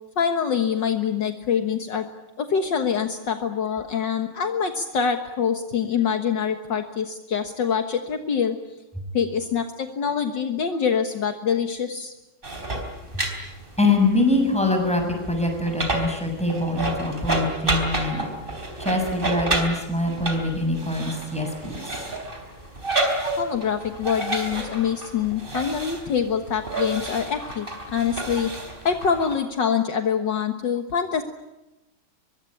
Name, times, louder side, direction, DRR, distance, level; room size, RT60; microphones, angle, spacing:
voice 1, 0.2-2.1 2.4-8.6 9.1-12.1 23.4-28.5 28.8-31.2, left 7 dB, 65° left, 6 dB, 2.0 m, -25 dB
sound 1, 12.4-29.3, right 1 dB, 25° right, 4.1 m, -30 dB
voice 2, 13.8-18.3 18.8-21.9, left 2 dB, 5° left, 3 dB, 6.7 m, -24 dB
23.5 x 23.0 x 9.9 m, 0.96 s
omnidirectional pair, 2.2 m